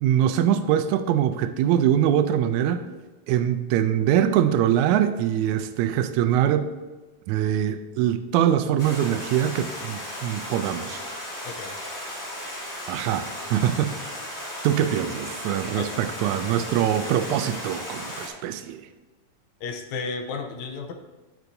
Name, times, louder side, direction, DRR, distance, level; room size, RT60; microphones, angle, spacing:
voice 1, 0.0-2.9 3.3-6.7 7.3-11.0 12.9-14.2 14.6-18.8, right 10 dB, 80° right, 10 dB, 1.9 m, -23 dB
Stream, 8.8-18.3, left 1 dB, 30° left, 2.5 m, -35 dB
voice 2, 11.4-11.8 15.7-16.0 19.6-20.9, left 4 dB, 75° left, 5 dB, 1.9 m, -33 dB
9.6 x 9.0 x 2.7 m, 1.2 s
omnidirectional pair, 3.5 m